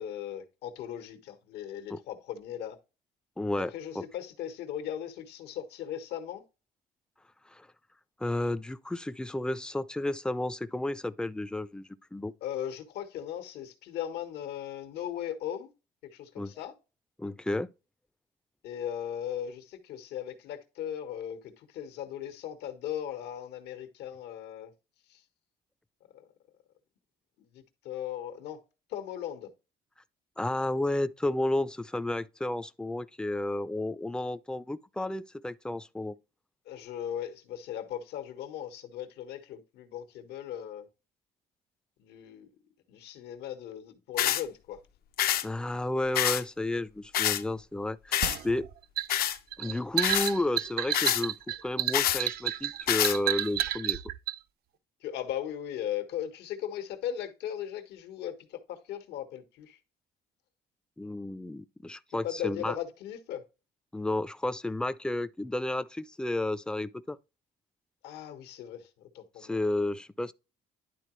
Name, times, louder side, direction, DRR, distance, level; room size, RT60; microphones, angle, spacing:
voice 1, 0.0-2.8 3.6-6.4 12.4-15.7 16.0-16.8 18.6-24.7 25.1-25.2 26.1-26.3 27.5-28.6 28.9-29.5 36.6-40.9 42.0-42.5 42.9-44.8 55.0-59.8 62.2-63.4 68.0-69.9, left 10 dB, 80° left, 1.5 m, -38 dB
voice 2, 3.4-3.7 4.0-4.1 7.5-7.7 8.2-12.3 16.4-16.5 17.2-17.7 30.4-36.1 45.4-48.7 49.6-51.4 51.6-54.0 61.0-62.7 63.9-67.2 69.4-70.3, left 1 dB, 5° left, 0.4 m, -32 dB
sound 1, 44.2-44.4 45.2-45.4 46.1-46.4 47.1-47.4 48.1-48.4 49.1-49.4 50.0-50.3 50.9-51.2 51.9-52.2 52.9-53.2, left 12 dB, 65° left, 0.7 m, -26 dB
sound 2, 48.2-54.4, right 12 dB, 65° right, 0.5 m, -31 dB
11.0 x 3.9 x 3.2 m
cardioid pair, 110°, 17 cm